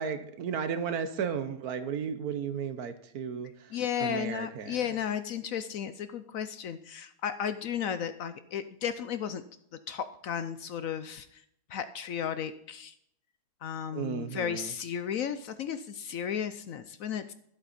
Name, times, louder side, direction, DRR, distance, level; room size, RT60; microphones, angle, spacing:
voice 1, 0.0-4.9 13.9-14.7, right 7 dB, 70° right, 10 dB, 1.3 m, -34 dB
voice 2, 3.7-9.4 9.9-11.4 11.7-12.9 13.6-17.3, left 8 dB, 65° left, 11 dB, 0.9 m, -34 dB
13.0 x 7.9 x 4.1 m, 0.71 s
omnidirectional pair, 1.8 m